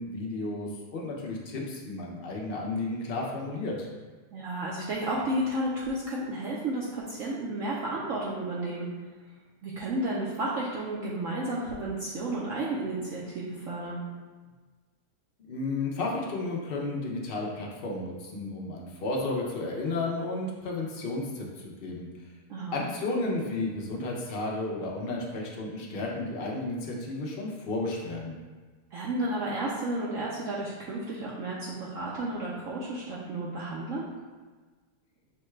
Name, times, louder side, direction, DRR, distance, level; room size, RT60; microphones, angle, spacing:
voice 1, 0.0-3.9 15.5-22.1 22.7-28.4, left 2 dB, 70° left, -2 dB, 0.5 m, -33 dB
voice 2, 4.3-8.9 9.6-14.0 22.5-22.8 28.9-34.1, right 1 dB, 65° right, -6 dB, 0.8 m, -32 dB
6.3 x 2.2 x 3.1 m, 1.4 s
omnidirectional pair, 1.8 m